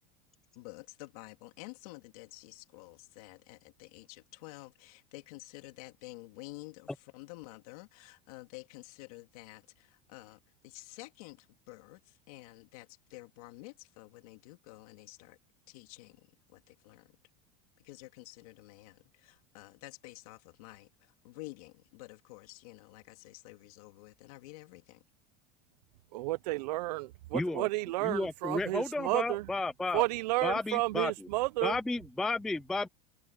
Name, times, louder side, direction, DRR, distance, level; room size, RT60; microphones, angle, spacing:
voice 1, 0.5-15.4 15.7-17.2 17.8-25.0, left 22 dB, 60° left, 3.2 m, -50 dB
voice 2, 26.1-29.5 29.9-31.8, right 19 dB, 75° right, 0.6 m, -31 dB
voice 3, 27.3-27.7 28.0-30.0 30.4-31.3 31.6-32.9, left 2 dB, ahead, 0.3 m, -33 dB
supercardioid pair, 180°, 21 cm